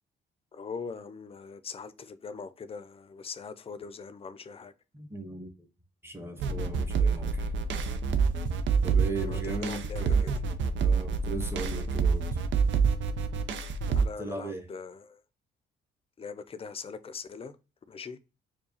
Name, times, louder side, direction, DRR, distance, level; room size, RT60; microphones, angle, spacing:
voice 1, 0.5-4.7 9.2-10.0 13.9-15.2 16.2-17.6 17.9-18.2, left 5 dB, 30° left, 0.4 m, -41 dB
voice 2, 4.9-5.5 6.0-7.5 8.8-10.3 10.8-12.3 14.2-14.7, right 2 dB, 10° right, 0.9 m, -37 dB
sound 1, 6.4-14.1, right 5 dB, 70° right, 0.5 m, -27 dB
4.6 x 2.3 x 2.7 m
cardioid pair, 90°, 20 cm